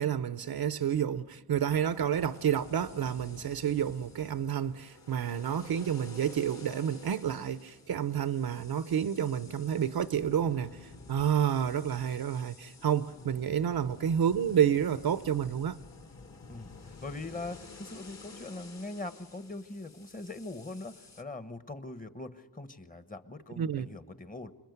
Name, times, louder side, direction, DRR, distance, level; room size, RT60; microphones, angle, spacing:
voice 1, 0.0-10.7 11.1-15.8 23.6-23.9, right 9 dB, 65° right, 0.7 m, -29 dB
space breathing, 1.7-21.2, left 3 dB, 45° left, 1.6 m, -51 dB
voice 2, 16.5-24.5, left 2 dB, 20° left, 1.2 m, -42 dB
27.0 x 21.5 x 9.4 m
wide cardioid pair, 105°, 39 cm